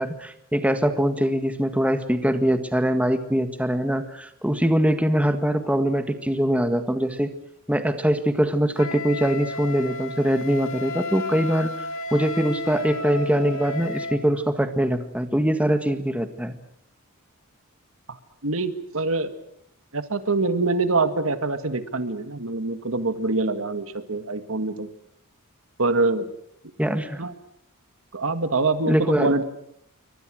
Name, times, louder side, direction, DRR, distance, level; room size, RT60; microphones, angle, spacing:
voice 1, 0.0-7.3 7.7-16.5 26.8-27.2 28.9-29.3, equal, 5° right, 8 dB, 1.7 m, -23 dB
Wind instrument woodwind instrument, 8.8-14.2, left 2 dB, 65° left, 2.4 m, -33 dB
voice 2, 18.4-19.3 19.9-24.9 25.8-26.3 27.2-27.3 28.1-29.4, right 3 dB, 65° right, 9 dB, 1.9 m, -24 dB
28.5 x 24.0 x 6.4 m, 0.71 s
head